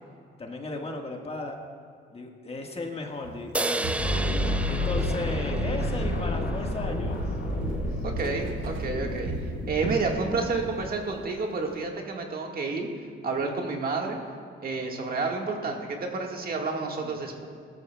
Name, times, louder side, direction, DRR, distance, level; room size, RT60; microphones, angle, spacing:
voice 1, 0.4-1.6 2.1-4.0 4.7-7.2 17.0-17.2, left 2 dB, 30° left, 2 dB, 1.5 m, -35 dB
Walk footsteps, 3.2-3.5 3.8-5.2 5.5-6.8 7.1-10.6 10.9-11.1 11.6-11.7, right 4 dB, 80° right, 1.1 m, -37 dB
sound 1, 3.5-7.0, right 2 dB, 5° right, 0.3 m, -33 dB
sound 2, 4.0-10.8, left 1 dB, 70° left, 3.5 m, -30 dB
voice 2, 8.0-9.3 9.7-12.9 13.2-14.2 14.6-17.5, right 4 dB, 50° right, 1 dB, 1.6 m, -30 dB
17.5 x 13.0 x 2.3 m, 2.2 s
cardioid pair, 90°, 20 cm